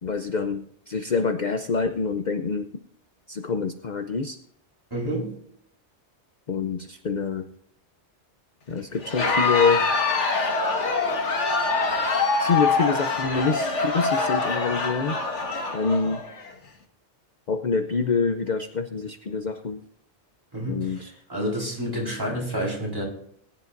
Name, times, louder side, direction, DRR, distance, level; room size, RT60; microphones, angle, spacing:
voice 1, 0.0-2.7 3.3-4.4 6.5-7.5 8.7-9.8 12.4-15.2 15.7-16.2 17.5-19.8 20.7-21.1, left 5 dB, 45° left, 7 dB, 0.8 m, -26 dB
voice 2, 4.9-5.3 20.5-23.0, equal, 20° right, -3 dB, 4.4 m, -29 dB
Crowd, 9.0-16.5, left 4 dB, 85° left, 1.9 m, -24 dB
20.5 x 10.5 x 2.6 m, 0.68 s
omnidirectional pair, 1.2 m